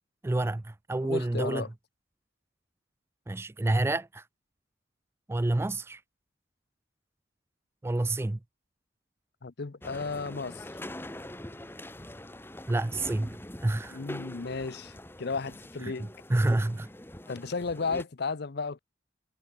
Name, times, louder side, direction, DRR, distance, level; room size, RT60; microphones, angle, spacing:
voice 1, 0.2-1.7 3.3-4.2 5.3-6.0 7.8-8.4 12.7-13.4 13.6-14.0 15.8-16.9, right 2 dB, 15° right, 0.3 m, -28 dB
voice 2, 1.0-1.7 9.4-10.7 13.9-16.1 17.3-18.8, left 4 dB, 55° left, 0.7 m, -34 dB
sound 1, 9.8-18.1, left 1 dB, 10° left, 1.6 m, -44 dB
head